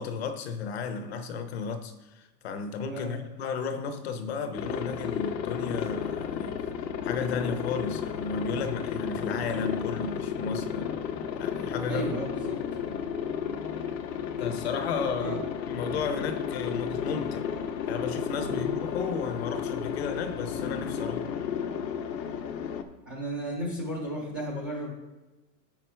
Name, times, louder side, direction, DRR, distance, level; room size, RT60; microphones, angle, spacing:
voice 1, 0.0-6.6 7.0-10.9 11.4-12.3 14.4-15.4 15.7-17.5 17.9-21.3, left 5 dB, 40° left, 0.7 m, -33 dB
Aircraft, 4.5-22.8, left 7 dB, 90° left, 1.1 m, -33 dB
voice 2, 11.8-12.6 15.2-15.4 18.5-18.7 23.1-24.9, right 1 dB, 15° right, 0.4 m, -34 dB
7.4 x 5.9 x 4.4 m
supercardioid pair, 175°, 49 cm